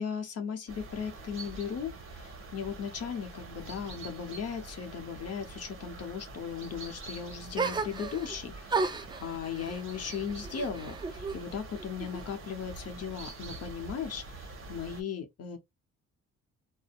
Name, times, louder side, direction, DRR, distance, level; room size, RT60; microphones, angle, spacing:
voice 1, 0.0-15.6, left 7 dB, 55° left, 0.8 m, -37 dB
sound 1, 0.7-15.0, right 3 dB, 45° right, 0.9 m, -45 dB
sound 2, 7.6-8.4 8.7-11.4 11.7-12.6, right 4 dB, 15° right, 0.4 m, -34 dB
2.6 x 2.1 x 2.4 m
cardioid pair, 90°, 30 cm